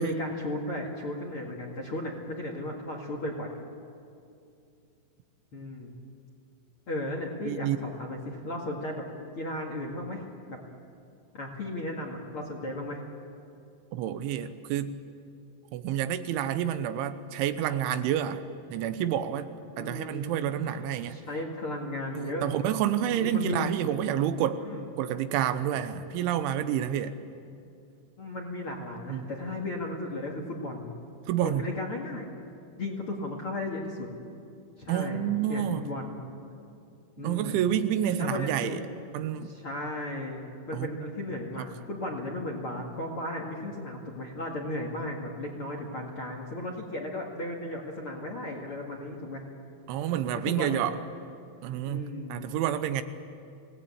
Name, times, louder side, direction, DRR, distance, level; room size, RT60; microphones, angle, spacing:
voice 1, 0.0-3.5 5.5-5.9 6.9-9.0 9.4-10.6 11.3-13.0 19.8-20.8 21.1-22.5 23.1-23.7 24.6-24.9 28.2-30.9 31.4-32.3 32.7-34.1 34.8-36.2 37.2-37.6 38.2-38.8 39.4-40.4 40.7-49.4 50.4-50.8 51.9-52.5, left 1 dB, 45° left, 1 dB, 2.0 m, -35 dB
voice 2, 7.5-7.8 13.9-15.0 15.7-18.4 18.7-21.2 22.1-24.6 25.0-27.2 29.1-29.3 31.3-31.7 34.9-35.9 37.2-38.8 39.1-39.5 40.7-41.0 41.6-41.7 49.9-51.0 51.6-53.0, right 10 dB, 85° right, 11 dB, 3.3 m, -29 dB
27.0 x 18.5 x 8.6 m, 2.5 s
omnidirectional pair, 5.4 m